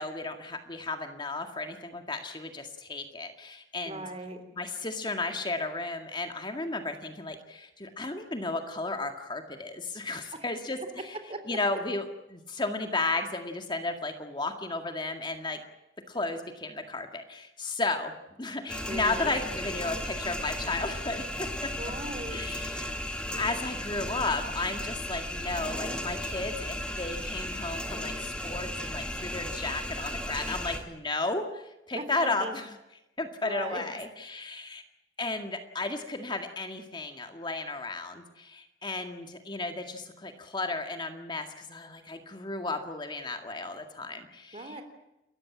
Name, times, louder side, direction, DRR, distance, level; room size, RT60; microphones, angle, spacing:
voice 1, 0.0-4.1 4.6-11.2 11.5-15.6 16.1-18.1 18.4-21.7 22.3-23.0 23.4-32.7 33.2-34.8 35.2-44.8, left 3 dB, 25° left, 6 dB, 2.0 m, -34 dB
voice 2, 3.9-4.4 11.3-11.4 18.9-19.4 21.8-22.6 31.9-32.6 33.4-33.8 44.5-44.8, right 1 dB, 35° right, 8 dB, 3.5 m, -38 dB
sound 1, 18.7-30.8, left 1 dB, 5° left, 2.8 m, -35 dB
29.5 x 14.5 x 8.7 m, 0.92 s
head